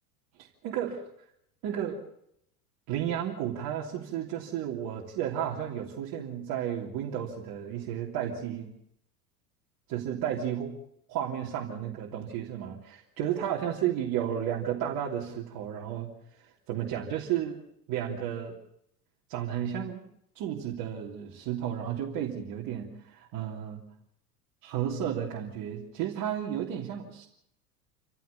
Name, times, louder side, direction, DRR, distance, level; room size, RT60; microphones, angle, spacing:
voice 1, 0.6-1.0 1.6-2.0 2.9-8.7 9.9-10.8 11.1-17.6 17.9-18.6 19.3-20.0 20.3-23.9 24.6-27.3, right 10 dB, 45° right, -3 dB, 3.1 m, -33 dB
28.5 x 15.0 x 7.0 m, 0.74 s
hypercardioid pair, 85°, 47 cm